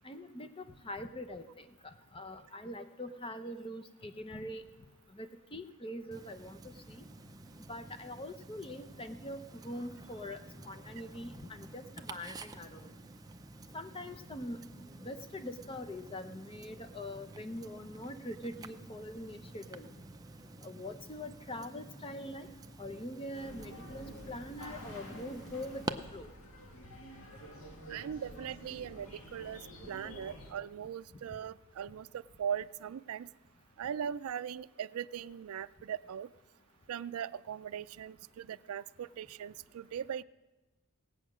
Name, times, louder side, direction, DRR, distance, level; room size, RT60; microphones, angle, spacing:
voice 1, 0.0-1.4 1.8-4.6 5.1-6.6 6.9-7.0 7.7-10.4 10.6-12.9 13.7-14.6 15.0-19.9 20.6-22.5 22.8-26.3, left 1 dB, 25° left, 9 dB, 0.7 m, -43 dB
Tick-tock, 6.1-25.9, right 2 dB, 15° right, 0.5 m, -49 dB
sound 1, 23.3-30.5, equal, 65° left, 2.0 m, -49 dB
voice 2, 27.9-29.6 29.9-33.3 33.8-36.3 36.9-40.2, right 8 dB, 75° right, 17 dB, 0.3 m, -40 dB
18.0 x 8.7 x 6.2 m, 1.2 s
head